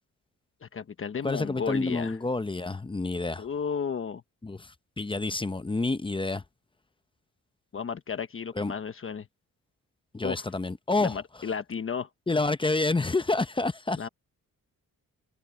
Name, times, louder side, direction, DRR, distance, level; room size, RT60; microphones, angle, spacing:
voice 1, 0.6-2.2 3.4-4.2 7.7-9.3 10.2-10.5 11.0-12.1 14.0-14.1, left 6 dB, 40° left, 1.1 m, -33 dB
voice 2, 1.2-3.5 4.4-6.4 8.6-8.7 10.1-11.2 12.3-14.0, left 3 dB, 15° left, 0.7 m, -28 dB
wide cardioid pair, 140°, 33 cm